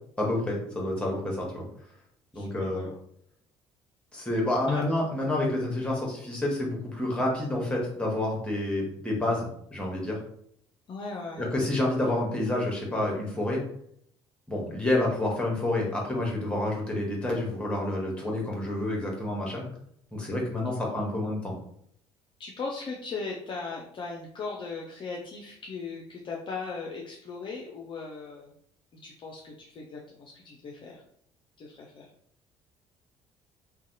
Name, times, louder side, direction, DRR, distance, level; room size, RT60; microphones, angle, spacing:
voice 1, 0.2-1.7 2.3-2.9 4.1-10.2 11.4-13.6 14.5-19.7 20.1-21.5, left 1 dB, 5° left, -2 dB, 0.9 m, -29 dB
voice 2, 2.3-3.0 4.7-4.8 10.9-11.5 22.4-28.5 29.0-31.0 31.6-32.1, left 4 dB, 30° left, -1 dB, 0.4 m, -38 dB
2.6 x 2.1 x 2.6 m, 0.69 s
figure-of-eight pair, 50°, 16 cm